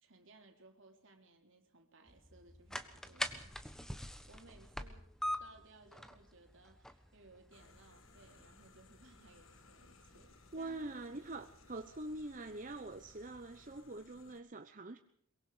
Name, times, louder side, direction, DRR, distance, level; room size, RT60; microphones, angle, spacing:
voice 1, 0.0-3.7 4.0-5.1 5.4-10.8, right 2 dB, 60° right, 3.6 m, -62 dB
sound 1, 2.1-13.8, equal, 5° left, 1.3 m, -47 dB
sound 2, 7.5-14.4, left 4 dB, 70° left, 1.7 m, -63 dB
voice 2, 10.5-15.0, right 2 dB, 40° right, 0.9 m, -44 dB
23.0 x 22.5 x 5.1 m
head